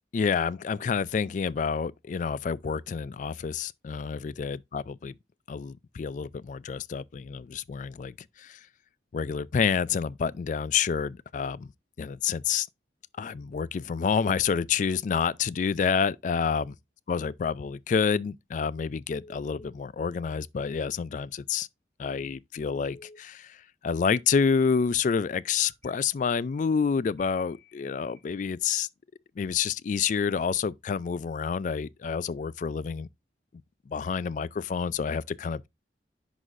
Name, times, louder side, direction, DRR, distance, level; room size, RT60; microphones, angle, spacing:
voice 1, 0.1-5.2 5.5-8.6 9.1-11.7 12.0-12.7 13.2-16.7 17.1-21.7 22.0-28.9 29.4-33.1 33.9-35.7, left 6 dB, 45° left, 0.3 m, -28 dB
Telephone, 19.2-19.7 22.7-23.2 24.1-24.4 25.6-25.9 27.2-28.2, left 2 dB, 10° left, 2.4 m, -53 dB
11.0 x 4.1 x 2.5 m
head